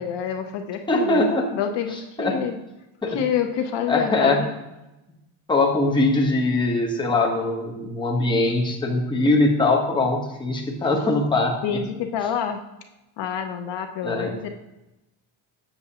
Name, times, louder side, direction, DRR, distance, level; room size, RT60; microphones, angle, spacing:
voice 1, 0.0-2.6 3.1-4.5 11.6-12.6 13.2-14.5, left 8 dB, 60° left, 6 dB, 0.8 m, -27 dB
voice 2, 0.9-1.5 1.9-2.4 3.0-3.2 3.9-4.4 5.5-11.8 14.0-14.5, left 2 dB, 10° left, 0 dB, 0.9 m, -22 dB
7.7 x 7.1 x 2.8 m, 0.96 s
cardioid pair, 135°, 47 cm